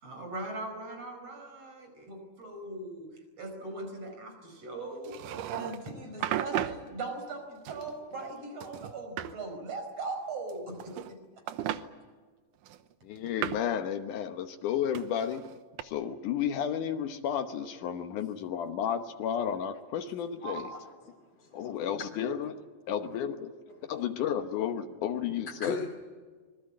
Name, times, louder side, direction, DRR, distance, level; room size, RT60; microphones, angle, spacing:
voice 1, 0.0-3.1 3.4-11.2, right 2 dB, 50° right, 5 dB, 6.2 m, -40 dB
sound 1, 5.1-5.9 6.2-6.8 7.7-8.3 8.6-9.3 10.5-11.2 11.5-11.8 12.7-13.7 15.0-15.8, right 11 dB, 90° right, 2.5 m, -35 dB
voice 2, 13.0-15.4 15.8-20.7 21.5-22.6 22.9-23.5 23.9-25.8, left 9 dB, 80° left, 7 dB, 2.6 m, -32 dB
voice 3, 20.4-22.0 23.7-24.0 24.8-25.9, left 2 dB, 20° left, -1 dB, 2.9 m, -41 dB
25.5 x 22.0 x 8.6 m, 1.5 s
omnidirectional pair, 3.6 m